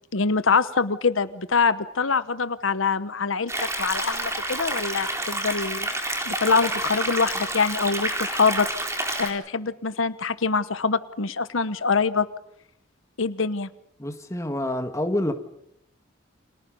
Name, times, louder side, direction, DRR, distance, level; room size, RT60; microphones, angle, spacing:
voice 1, 0.1-5.9 6.3-8.7 9.2-12.3 13.2-13.7, left 4 dB, 85° left, 1.0 m, -24 dB
sound 1, 3.5-9.3, right 1 dB, 15° right, 4.0 m, -29 dB
voice 2, 14.0-15.3, left 1 dB, 15° left, 2.1 m, -27 dB
30.0 x 26.5 x 5.4 m
head